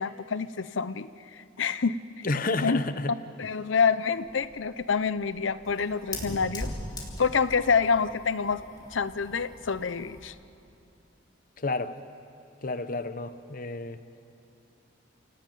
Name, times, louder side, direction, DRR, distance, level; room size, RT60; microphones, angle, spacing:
voice 1, 0.0-2.3 2.6-2.8 3.4-6.7 7.2-8.6 8.9-10.3, left 5 dB, 85° left, 14 dB, 0.7 m, -27 dB
voice 2, 2.2-3.1 11.6-12.0 12.6-14.0, left 3 dB, 45° left, 11 dB, 0.9 m, -30 dB
Fire, 4.3-10.4, left 1 dB, 20° left, 3.4 m, -41 dB
29.5 x 18.0 x 9.2 m, 2.7 s
head